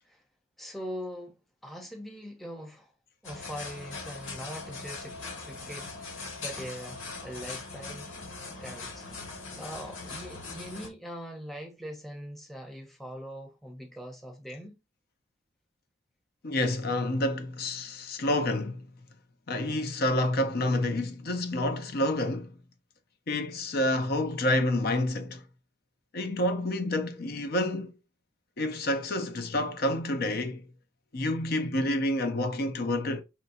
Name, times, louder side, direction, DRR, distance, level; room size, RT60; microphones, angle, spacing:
voice 1, 0.6-2.9 3.2-5.2 5.4-8.1 8.6-9.1 9.6-14.7, equal, ahead, 0.7 m, -42 dB
sound 1, 3.2-10.9, left 3 dB, 80° left, 1.4 m, -41 dB
voice 2, 16.4-18.8 19.5-22.5 23.3-25.4 26.1-27.9 28.6-30.6 31.1-33.2, left 1 dB, 50° left, 0.6 m, -28 dB
5.5 x 2.7 x 2.6 m
head